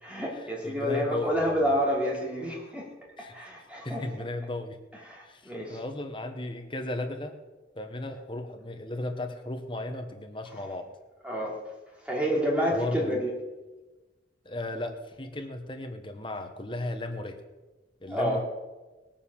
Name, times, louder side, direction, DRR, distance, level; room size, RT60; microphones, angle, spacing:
voice 1, 0.0-2.9 3.2-4.1 4.9-5.8 11.2-11.6 12.0-13.3 18.1-18.4, equal, 5° right, -3 dB, 3.0 m, -29 dB
voice 2, 0.6-1.6 3.2-3.3 3.8-4.8 5.2-7.4 7.8-10.9 12.7-13.2 14.4-17.4 18.0-18.4, left 1 dB, 25° left, 5 dB, 1.1 m, -35 dB
19.0 x 7.3 x 7.2 m, 1.2 s
head